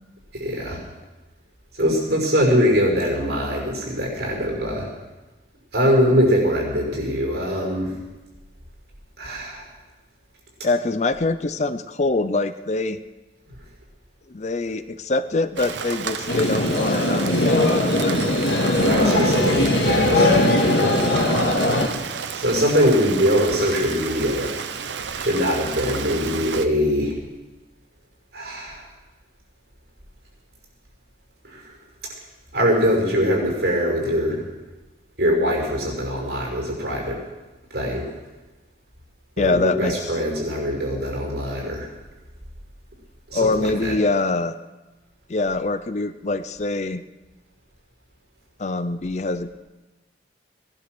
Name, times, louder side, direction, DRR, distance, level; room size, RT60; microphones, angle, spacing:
voice 1, 0.3-0.8 1.8-4.9 5.7-7.9 9.2-9.7 18.8-21.5 22.4-24.5 25.2-27.1 28.3-28.8 31.5-31.6 32.5-34.4 35.2-37.2 37.7-38.1 39.4-41.9 43.3-43.9, equal, 60° right, -1 dB, 5.7 m, -22 dB
voice 2, 10.6-13.0 14.3-18.2 39.4-39.9 43.3-44.6 45.3-47.0 48.6-49.5, left 3 dB, 40° left, 12 dB, 0.6 m, -24 dB
Rain, 15.6-26.7, right 6 dB, 80° right, 0.8 m, -32 dB
sound 1, 16.3-21.9, left 1 dB, 90° left, 2.1 m, -20 dB
18.5 x 11.5 x 6.2 m, 1.2 s
head